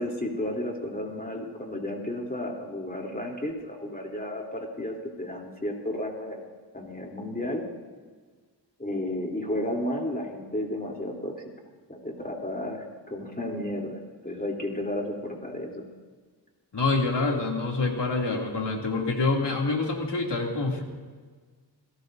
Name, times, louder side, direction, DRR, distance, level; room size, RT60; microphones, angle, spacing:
voice 1, 0.0-6.4 6.7-7.6 8.8-11.4 11.9-14.0 14.2-15.9, left 1 dB, 20° left, 0 dB, 3.3 m, -32 dB
voice 2, 16.7-20.8, left 3 dB, 70° left, 0 dB, 2.8 m, -26 dB
28.5 x 17.5 x 2.7 m, 1.5 s
wide cardioid pair, 90°, 43 cm